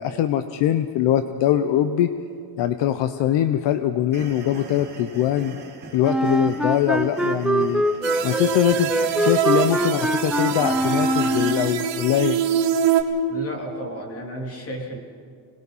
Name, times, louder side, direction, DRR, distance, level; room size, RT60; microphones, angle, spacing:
voice 1, 0.0-2.1 2.6-5.6 5.9-7.8 8.2-8.9 9.2-12.4, left 11 dB, 70° left, 10 dB, 0.9 m, -22 dB
sound 1, 4.1-11.7, right 4 dB, 25° right, 2.9 m, -41 dB
Wind instrument woodwind instrument, 6.0-11.7, right 1 dB, ahead, 0.5 m, -23 dB
sound 2, 8.0-13.0, right 9 dB, 75° right, 1.9 m, -25 dB
voice 2, 13.3-15.0, right 1 dB, 30° left, 1 dB, 3.4 m, -33 dB
26.5 x 19.5 x 5.6 m, 2.2 s
cardioid pair, 160°, 44 cm